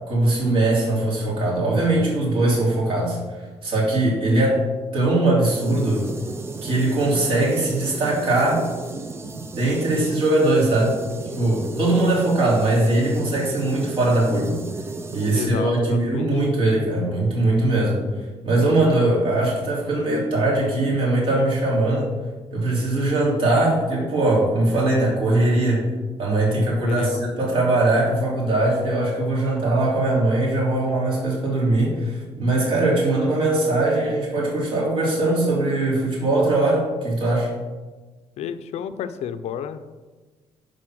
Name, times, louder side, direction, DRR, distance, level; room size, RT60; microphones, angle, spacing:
voice 1, 0.1-3.2 3.6-4.6 4.9-6.1 6.6-8.7 9.3-11.0 11.4-14.6 15.1-18.0 18.4-22.1 22.5-25.8 26.2-37.5, right 2 dB, 50° right, -3 dB, 3.2 m, -21 dB
sound 1, 5.5-15.5, right 3 dB, 20° right, 0.5 m, -35 dB
voice 2, 15.3-16.3 26.8-27.3 38.4-39.9, left 8 dB, 70° left, 11 dB, 0.6 m, -31 dB
10.5 x 4.2 x 6.2 m, 1.3 s
cardioid pair, 175°, 11 cm